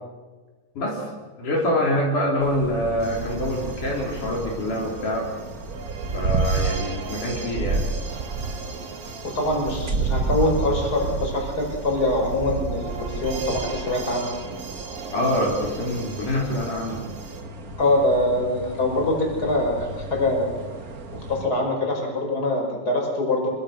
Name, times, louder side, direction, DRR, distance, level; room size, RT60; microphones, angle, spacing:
voice 1, 1.4-5.3 6.1-7.9 15.1-17.0, left 1 dB, 65° left, -2 dB, 5.2 m, -25 dB
sound 1, 2.4-21.5, right 3 dB, 40° right, 1.4 m, -31 dB
sound 2, 3.0-17.4, right 5 dB, 65° right, 3.4 m, -40 dB
voice 2, 9.2-14.3 17.8-20.5 21.3-23.5, left 1 dB, 25° left, 1 dB, 6.2 m, -24 dB
27.5 x 25.0 x 6.6 m, 1.3 s
omnidirectional pair, 3.8 m